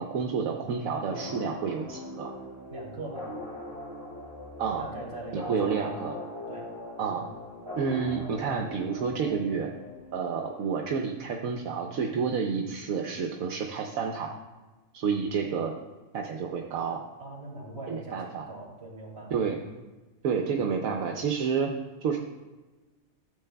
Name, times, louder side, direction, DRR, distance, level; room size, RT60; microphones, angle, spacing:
voice 1, 0.0-2.3 4.6-4.8 5.3-6.1 7.0-7.3 7.8-9.7 10.1-14.4 14.9-15.7 16.1-17.0 17.9-18.5 19.3-19.6 20.2-21.7 22.0-22.2, right 6 dB, 80° right, 2 dB, 1.2 m, -29 dB
sound 1, 1.0-10.5, left 1 dB, 20° right, 3.0 m, -40 dB
voice 2, 2.7-3.3 4.8-5.9 6.5-6.7 17.2-19.3, right 2 dB, 45° right, -3 dB, 3.1 m, -41 dB
14.0 x 8.2 x 2.3 m, 1.2 s
omnidirectional pair, 1.4 m